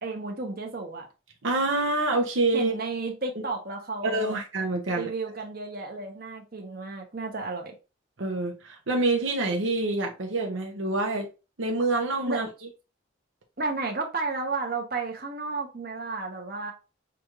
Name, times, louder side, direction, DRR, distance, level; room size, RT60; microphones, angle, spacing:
voice 1, 0.0-1.1 2.5-4.4 4.9-7.7 12.3-12.4 13.6-16.7, right 3 dB, 50° right, 1.0 m, -32 dB
voice 2, 1.4-2.8 4.0-5.1 8.2-11.3 11.6-12.5, right 2 dB, 75° right, 0.8 m, -26 dB
5.9 x 2.5 x 3.0 m
head